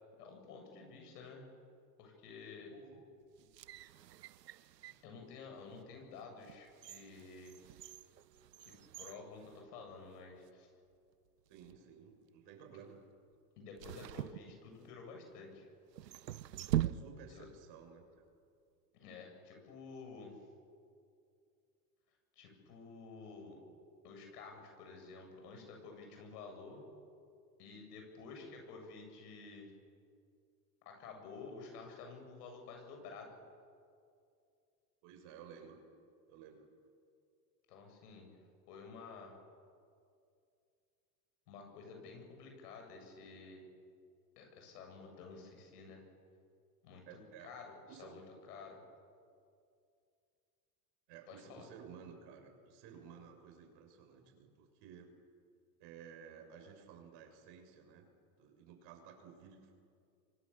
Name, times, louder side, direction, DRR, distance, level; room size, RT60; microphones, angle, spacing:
voice 1, 0.2-1.5 2.0-2.7 5.0-7.6 8.6-10.7 13.6-15.7 17.3-17.5 18.9-20.4 22.4-23.6 24.0-26.8 27.6-29.7 30.8-33.4 37.7-38.3 38.7-39.4 41.5-43.6 44.4-46.0 46.8-47.7 48.0-48.2 48.5-48.8 51.3-51.7, left 4 dB, 75° left, 2 dB, 7.9 m, -51 dB
voice 2, 2.7-3.1 11.5-13.0 16.8-18.1 35.0-35.8 36.3-36.6 47.1-47.6 47.9-48.2 51.1-55.1 55.8-58.1 58.4-59.7, right 7 dB, 60° right, 4 dB, 6.5 m, -55 dB
sound 1, 3.4-5.1 5.7-5.9 6.4-10.2 10.5-10.6 11.4-11.8 13.8-15.1 15.9-17.5 17.7-17.8, right 13 dB, 90° right, 0.9 m, -42 dB
29.5 x 24.0 x 7.3 m, 2.4 s
hypercardioid pair, 90°, 48 cm